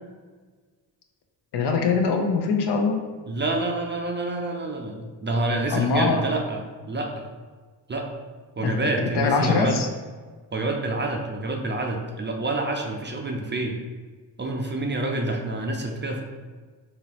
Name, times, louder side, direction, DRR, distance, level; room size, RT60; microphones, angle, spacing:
voice 1, 1.5-3.0 5.7-6.2 8.6-8.8 9.1-9.9, left 5 dB, 60° left, 3 dB, 0.7 m, -22 dB
voice 2, 3.3-7.3 7.9-8.1 8.6-9.8 10.5-13.8 14.4-16.2, right 2 dB, 25° right, 1 dB, 0.4 m, -27 dB
3.7 x 2.9 x 2.9 m, 1.4 s
supercardioid pair, 60°, 46 cm